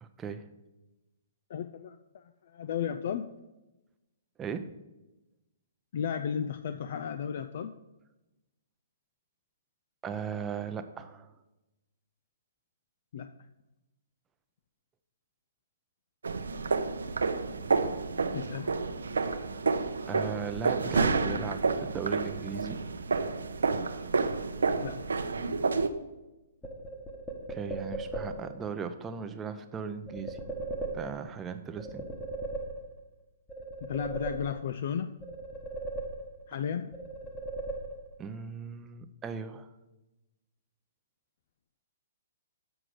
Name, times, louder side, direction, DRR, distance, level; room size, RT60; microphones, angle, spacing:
voice 1, 0.0-0.4 4.4-4.7 10.0-11.3 20.1-22.8 27.5-30.4 30.9-32.0 38.2-39.7, right 6 dB, 15° right, 8 dB, 0.5 m, -37 dB
voice 2, 1.5-3.3 5.9-7.7 13.1-13.3 18.3-18.8 24.8-25.1 33.8-35.1 36.5-36.9, left 8 dB, 55° left, 10 dB, 0.4 m, -34 dB
sound 1, 16.2-25.9, right 4 dB, 90° right, 0.6 m, -29 dB
sound 2, 26.6-28.6 30.1-31.4 31.8-33.1 33.5-34.9 35.2-36.6 36.9-38.3, right 2 dB, 10° left, 1.2 m, -38 dB
7.7 x 4.8 x 6.6 m, 1.0 s
hypercardioid pair, 145°, 0 cm